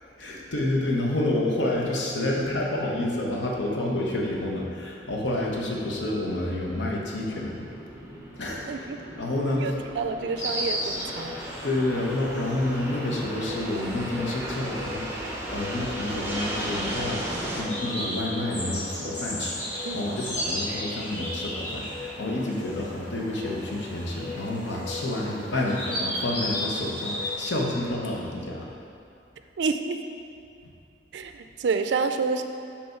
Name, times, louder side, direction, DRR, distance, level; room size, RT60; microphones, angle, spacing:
voice 1, 0.2-7.7 8.4-8.9 9.2-9.8 11.6-28.7, left 1 dB, 80° left, -2 dB, 0.9 m, -29 dB
Fixed-wing aircraft airplane, 5.6-17.6, right 1 dB, 15° right, 0.7 m, -36 dB
sound 1, 6.2-13.8, equal, 5° left, 1.3 m, -45 dB
voice 2, 8.7-9.0 9.6-11.4 19.8-20.3 29.6-30.0 31.1-32.4, right 4 dB, 70° right, 8 dB, 0.3 m, -29 dB
Insect, 10.4-27.3, left 1 dB, 40° left, 1.5 m, -35 dB
5.4 x 3.4 x 5.8 m, 2.5 s
head